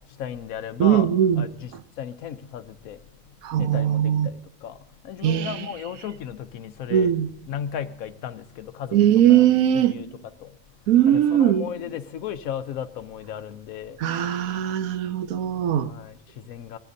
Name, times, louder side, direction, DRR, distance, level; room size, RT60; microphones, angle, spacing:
voice 1, 0.2-1.1 1.4-3.0 3.6-4.8 5.0-7.1 7.5-9.0 9.3-9.5 9.7-10.1 10.4-10.5 11.1-14.0 15.8-16.8, left 9 dB, 85° left, 1.1 m, -35 dB
voice 2, 0.8-1.4 3.4-4.3 5.2-5.6 6.9-7.3 8.9-10.0 10.9-11.7 14.0-15.9, right 10 dB, 85° right, 1.2 m, -20 dB
20.5 x 15.0 x 2.7 m
omnidirectional pair, 1.4 m